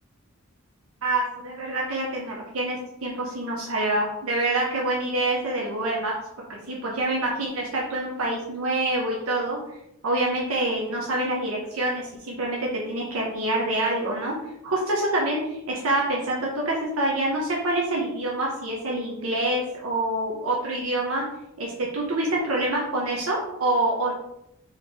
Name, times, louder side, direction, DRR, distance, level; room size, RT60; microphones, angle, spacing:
voice 1, 1.0-6.1 6.5-9.6 10.0-14.3 14.6-21.2 21.6-24.1, right 2 dB, 75° right, -3 dB, 0.9 m, -26 dB
4.4 x 3.0 x 3.7 m, 0.83 s
head